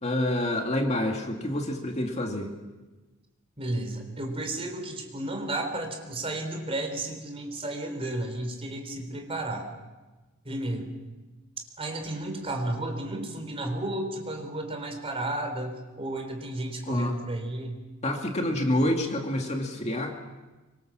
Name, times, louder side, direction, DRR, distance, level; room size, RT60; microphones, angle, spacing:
voice 1, 0.0-2.5 16.9-17.1 18.0-20.1, left 1 dB, 30° left, 2 dB, 2.3 m, -27 dB
voice 2, 3.6-9.7 10.4-11.0 11.8-17.8, right 1 dB, 30° right, 5 dB, 4.0 m, -32 dB
25.0 x 24.5 x 7.4 m, 1.2 s
head